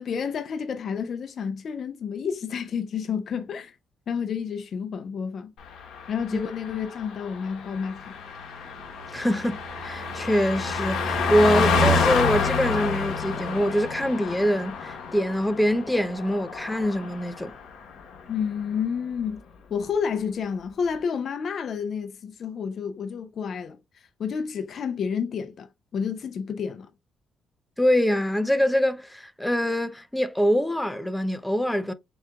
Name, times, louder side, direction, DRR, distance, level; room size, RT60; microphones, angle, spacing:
voice 1, 0.0-3.8 4.1-5.5 6.1-8.2 18.3-19.4 19.7-25.7 25.9-26.9, left 6 dB, 55° left, 0.4 m, -30 dB
Car passing by, 5.7-17.6 17.9-18.1, left 4 dB, 75° left, 1.1 m, -28 dB
voice 2, 9.1-17.6 27.8-31.9, equal, 5° left, 0.6 m, -24 dB
7.0 x 2.8 x 2.3 m
cardioid pair, 90°, 0 cm